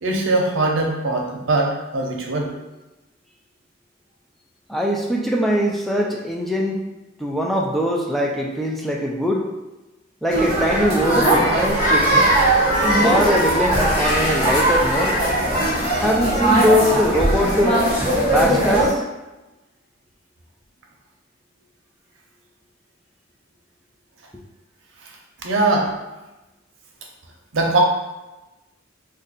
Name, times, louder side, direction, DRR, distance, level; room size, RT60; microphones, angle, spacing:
voice 1, 0.0-2.5 25.4-25.9 27.5-27.8, right 2 dB, 90° right, 0 dB, 0.7 m, -21 dB
voice 2, 4.7-6.8 7.2-9.5 10.2-12.2 12.9-15.2 16.0-17.8 18.3-19.0, equal, ahead, -2 dB, 0.3 m, -22 dB
sound 1, 10.3-18.9, right 1 dB, 55° left, 1.4 m, -19 dB
2.6 x 2.6 x 4.0 m, 1.1 s
head